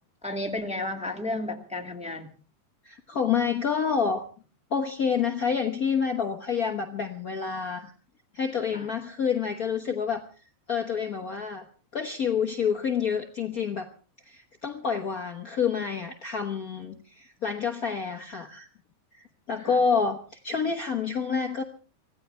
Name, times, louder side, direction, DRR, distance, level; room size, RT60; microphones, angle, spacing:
voice 1, 0.2-2.3 8.7-8.8 19.6-19.7, left 2 dB, 5° right, 2 dB, 1.5 m, -32 dB
voice 2, 2.8-4.2 4.7-7.9 8.3-10.2 10.7-11.6 11.9-13.9 14.2-18.7 19.1-21.6, left 6 dB, 70° left, 4 dB, 0.8 m, -28 dB
25.5 x 16.5 x 3.4 m, 0.37 s
omnidirectional pair, 3.6 m